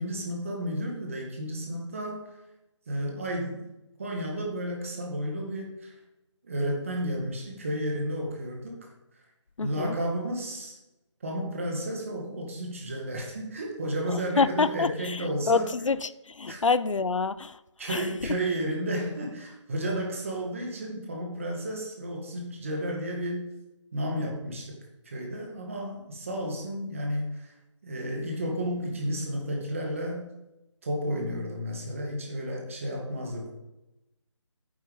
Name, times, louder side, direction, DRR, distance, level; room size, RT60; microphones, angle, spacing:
voice 1, 0.0-2.3 2.9-3.6 4.0-6.0 6.4-8.9 9.6-10.8 11.2-15.7 16.5-16.6 17.8-23.5 23.9-24.8 25.1-27.5 27.8-30.3 30.8-33.5, equal, 25° right, 2.0 m, -32 dB
voice 2, 9.6-10.0 14.1-17.6 17.9-18.0, left 4 dB, 85° left, 0.6 m, -27 dB
9.7 x 7.2 x 5.5 m
figure-of-eight pair, 175°, 16 cm